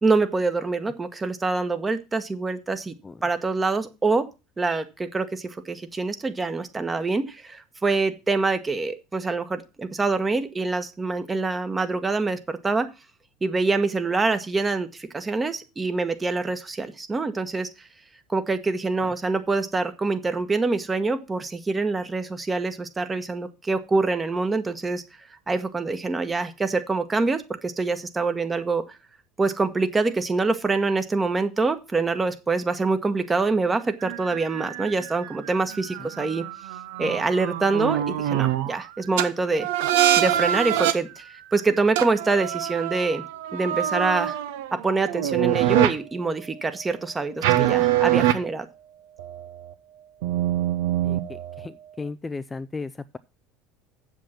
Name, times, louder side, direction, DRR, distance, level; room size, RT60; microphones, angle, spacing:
voice 1, 0.0-2.9 3.2-4.3 4.6-12.9 13.4-17.7 18.3-25.0 25.5-29.0 29.4-36.5 37.0-39.7 40.2-43.2 43.5-44.4 44.7-48.7, right 3 dB, 20° right, 9 dB, 1.3 m, -25 dB
sound 1, 34.0-38.8 39.2-39.3 39.6-40.9 42.0-45.9 47.4-48.3 49.2-49.7 50.2-51.7, right 12 dB, 65° right, 0.8 m, -25 dB
voice 2, 51.0-53.2, left 3 dB, 20° left, 12 dB, 0.4 m, -36 dB
7.6 x 7.4 x 5.7 m, 0.29 s
hypercardioid pair, 70°, 0 cm